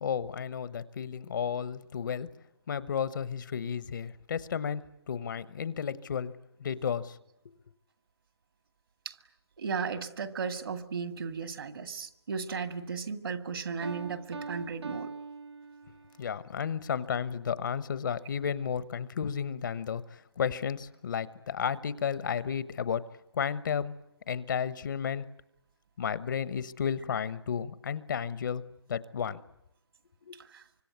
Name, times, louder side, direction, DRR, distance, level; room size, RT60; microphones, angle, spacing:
voice 1, 0.0-2.3 2.7-6.3 6.6-7.2 16.2-23.1 23.3-23.9 24.3-25.3 26.0-28.6 28.9-29.4 30.3-30.4, left 7 dB, 50° left, 17 dB, 1.1 m, -33 dB
voice 2, 9.6-15.1 30.5-30.6, right 5 dB, 60° right, 10 dB, 2.1 m, -35 dB
Piano, 13.8-16.3, right 4 dB, 80° right, 1.1 m, -42 dB
25.0 x 25.0 x 9.4 m, 0.81 s
hypercardioid pair, 160°, 14 cm